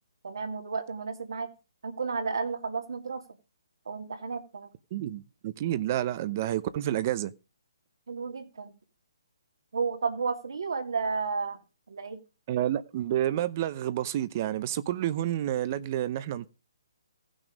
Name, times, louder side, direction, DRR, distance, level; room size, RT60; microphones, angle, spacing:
voice 1, 0.2-1.5 1.8-3.2 3.9-4.7 8.1-8.7 9.7-11.6 11.9-12.2, right 5 dB, 75° right, 2.3 m, -32 dB
voice 2, 4.9-7.3 12.5-16.5, right 12 dB, 35° right, 0.7 m, -29 dB
15.0 x 6.2 x 5.2 m
hypercardioid pair, 150°, 2 cm